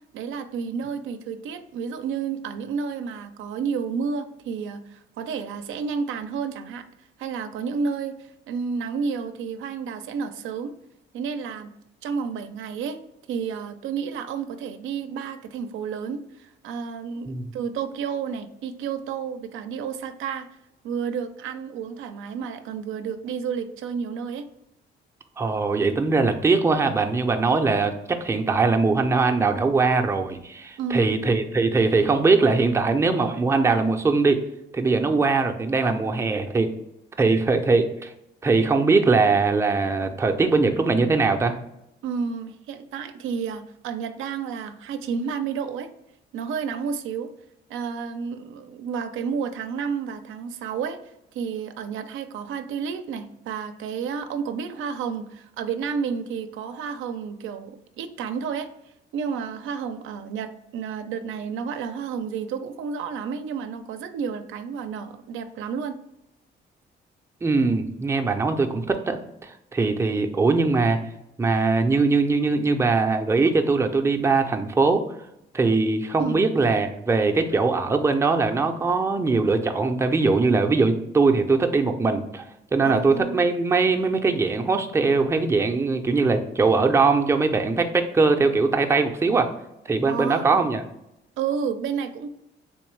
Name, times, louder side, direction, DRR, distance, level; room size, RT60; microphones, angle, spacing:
voice 1, 0.1-6.8 7.2-10.7 11.1-11.7 12.0-13.0 13.3-20.5 20.8-24.5 30.8-31.2 42.0-45.9 46.3-47.3 47.7-51.0 51.3-58.7 59.1-66.0 76.2-76.4 82.8-83.4 90.0-90.7 91.4-92.3, right 6 dB, 80° right, 8 dB, 0.4 m, -31 dB
voice 2, 25.4-27.9 28.2-34.4 34.7-36.7 37.2-38.1 38.4-41.5 67.4-71.0 71.4-75.0 75.5-82.4 82.7-89.5 89.9-90.8, right 3 dB, 15° right, 4 dB, 0.4 m, -21 dB
3.5 x 2.9 x 3.1 m, 0.85 s
cardioid pair, 90°, 20 cm